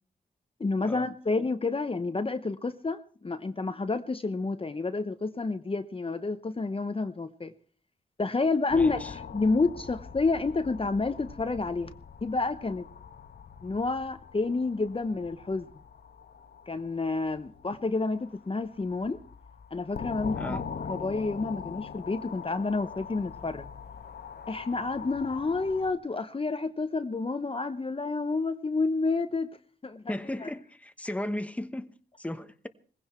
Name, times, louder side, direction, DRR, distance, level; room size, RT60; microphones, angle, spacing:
voice 1, 0.6-7.5 8.2-11.9 12.2-12.9 13.6-15.7 16.7-19.2 19.7-20.6 20.9-23.7 24.5-29.5 29.8-30.1 30.4-30.5, left 3 dB, 30° left, 0.9 m, -29 dB
sound 1, 8.7-25.9, left 6 dB, 65° left, 1.2 m, -43 dB
voice 2, 8.7-9.1 20.3-20.6 30.1-32.7, left 1 dB, 5° left, 1.1 m, -36 dB
19.5 x 16.0 x 4.5 m
cardioid pair, 70°, 18 cm